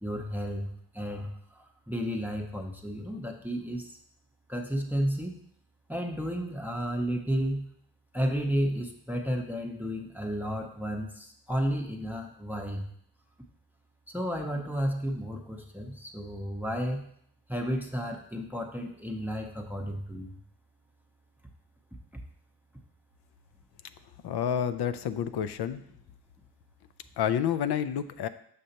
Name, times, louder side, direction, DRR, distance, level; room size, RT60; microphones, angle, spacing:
voice 1, 0.0-4.0 4.5-5.4 5.9-7.7 8.1-12.8 14.1-17.0 17.5-20.4, equal, 5° right, 1 dB, 0.6 m, -32 dB
voice 2, 24.2-25.8 27.2-28.3, left 9 dB, 80° left, 12 dB, 0.5 m, -29 dB
6.6 x 6.2 x 2.9 m, 0.67 s
wide cardioid pair, 110°, 39 cm